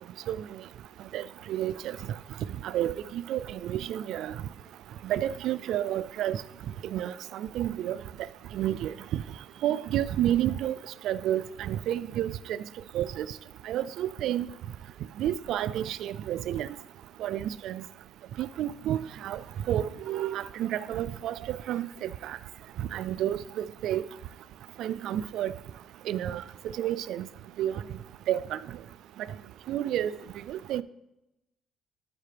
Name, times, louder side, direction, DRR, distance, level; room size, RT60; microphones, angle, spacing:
voice 1, 1.1-1.8 2.7-4.3 5.1-6.4 6.9-8.0 8.5-9.2 9.6-10.8 11.0-12.6 12.9-13.3 13.7-14.5 15.2-16.7 17.2-17.8 18.4-19.0 19.2-19.4 19.7-22.4 22.9-24.0 24.8-25.5 26.1-26.4 26.8-27.3 27.6-27.8 28.3-28.6 29.7-30.1 30.5-30.8, right 11 dB, 85° right, 16 dB, 0.3 m, -30 dB
12.0 x 5.7 x 3.4 m, 0.92 s
cardioid pair, 90°, 0 cm